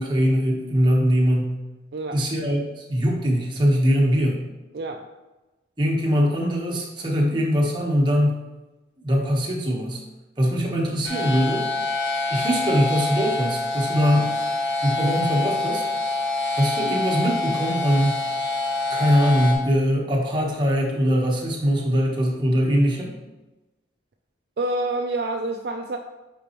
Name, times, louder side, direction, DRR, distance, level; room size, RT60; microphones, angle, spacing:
voice 1, 0.0-1.5 2.1-4.4 5.8-8.4 9.0-10.0 10.4-11.7 12.3-14.3 14.8-15.9 16.6-18.2 18.9-23.1, equal, 25° right, -3 dB, 1.1 m, -22 dB
sound 1, 11.0-19.5, left 2 dB, 85° left, 1.3 m, -26 dB
voice 2, 24.6-26.0, right 2 dB, 60° right, 3 dB, 0.4 m, -27 dB
8.3 x 4.3 x 3.0 m, 1.1 s
head